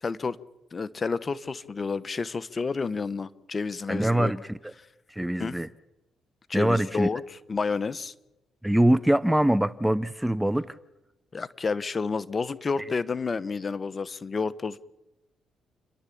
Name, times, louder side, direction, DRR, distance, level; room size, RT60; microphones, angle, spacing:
voice 1, 0.0-0.4 0.7-4.3 5.4-5.6 6.5-7.2 7.5-8.1 11.3-14.8, left 4 dB, 35° left, 1.0 m, -30 dB
voice 2, 3.9-4.7 5.1-5.7 6.5-7.1 8.6-10.8, right 1 dB, 5° right, 0.6 m, -24 dB
29.5 x 11.5 x 8.5 m
cardioid pair, 90°, 0 cm